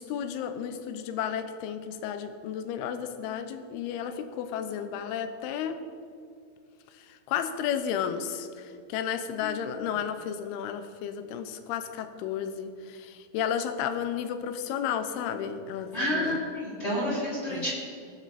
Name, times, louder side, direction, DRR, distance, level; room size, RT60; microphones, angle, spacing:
voice 1, 0.0-5.8 7.3-16.4 17.5-17.7, left 8 dB, 80° left, 9 dB, 2.6 m, -33 dB
voice 2, 15.9-17.7, equal, 15° left, -7 dB, 3.0 m, -29 dB
19.5 x 9.5 x 4.2 m, 2.4 s
omnidirectional pair, 4.8 m